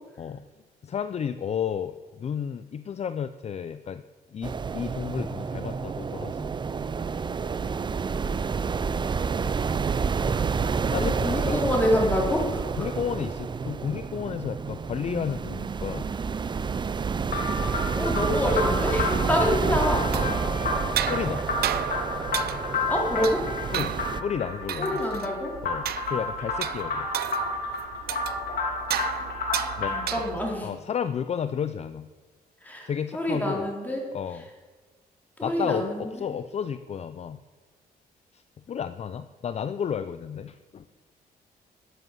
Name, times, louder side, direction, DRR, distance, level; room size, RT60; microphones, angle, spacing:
voice 1, 0.2-0.5 0.8-4.0 4.3-6.5 10.9-11.6 12.8-16.1 20.3-20.4 21.0-21.4 23.2-23.3 23.7-25.1 25.6-27.1 29.8-30.0 30.6-32.1 32.9-33.6 34.1-34.4 35.4-37.4 38.3-38.4 38.7-40.9, left 8 dB, 40° left, 12 dB, 0.5 m, -32 dB
sound 1, 4.4-24.2, right 5 dB, 30° right, 0.5 m, -29 dB
voice 2, 11.0-12.7 17.9-20.0 22.9-23.4 24.8-25.5 29.9-30.7 32.6-34.0 35.4-36.1, left 1 dB, 10° left, -2 dB, 3.8 m, -26 dB
sound 2, 17.3-30.2, left 3 dB, 70° left, 3.2 m, -31 dB
sound 3, 20.1-30.6, right 11 dB, 75° right, 0.6 m, -34 dB
12.5 x 8.1 x 7.8 m, 1.4 s
cardioid pair, 105°, 16 cm